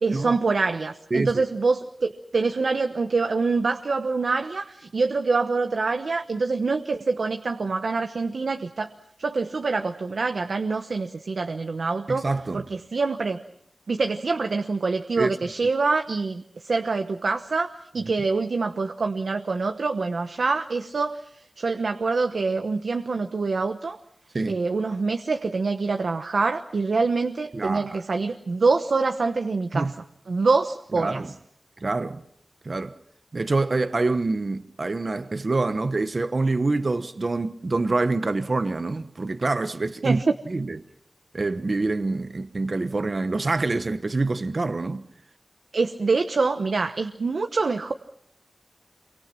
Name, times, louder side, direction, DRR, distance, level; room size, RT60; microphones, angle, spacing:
voice 1, 0.0-8.9 9.2-12.3 12.5-13.4 13.9-17.7 17.9-21.2 21.6-24.0 24.5-29.9 30.3-31.3 40.0-40.2 45.7-47.9, right 4 dB, 85° right, 1.1 m, -25 dB
voice 2, 1.1-1.4 12.1-12.6 15.2-15.3 24.3-24.6 27.5-28.0 29.7-29.9 30.9-31.3 31.8-32.2 32.6-32.9 33.3-40.2 40.5-40.8 41.3-45.1, right 3 dB, 55° right, 1.1 m, -26 dB
27.5 x 24.5 x 5.9 m
wide cardioid pair, 60°, 0 cm